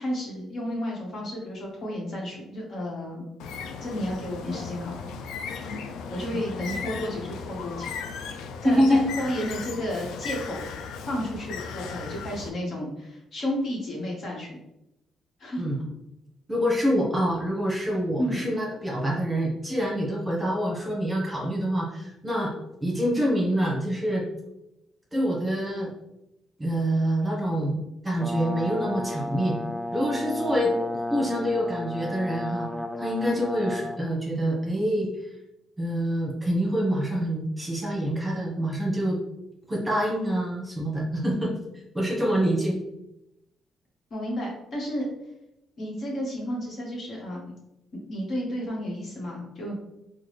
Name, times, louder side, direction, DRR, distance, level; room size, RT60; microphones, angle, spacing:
voice 1, 0.0-3.2 3.8-5.1 6.1-7.9 8.6-10.6 11.1-14.6 15.4-15.6 18.2-18.5 44.1-45.1 45.8-47.5 48.1-49.7, equal, 55° left, -2 dB, 1.2 m, -32 dB
Bird, 3.4-12.5, left 5 dB, 85° left, 0.3 m, -36 dB
voice 2, 8.6-9.0 15.6-15.8 16.5-22.5 22.8-24.2 25.1-25.9 26.6-29.6 29.9-32.7 33.0-35.1 35.8-39.2 39.7-41.5 41.9-42.8, equal, 15° right, -3 dB, 1.1 m, -26 dB
Brass instrument, 28.2-34.0, left 1 dB, 5° left, 0.3 m, -33 dB
3.7 x 2.2 x 3.2 m, 0.87 s
cardioid pair, 90°, 0 cm